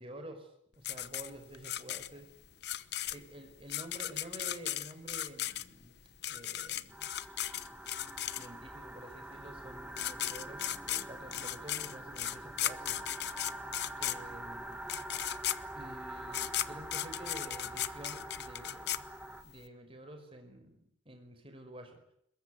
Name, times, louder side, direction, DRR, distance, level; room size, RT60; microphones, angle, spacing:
voice 1, 0.0-2.3 3.1-6.0 6.3-7.1 8.2-13.0 14.0-15.0 15.8-19.0 19.4-22.0, right 1 dB, 30° right, 6 dB, 5.2 m, -49 dB
sound 1, 0.8-8.8 9.6-9.7 9.9-19.6, left 12 dB, 60° left, 0.9 m, -36 dB
sound 2, 6.9-19.4, right 1 dB, 5° right, 1.6 m, -45 dB
22.5 x 21.0 x 9.6 m, 0.72 s
head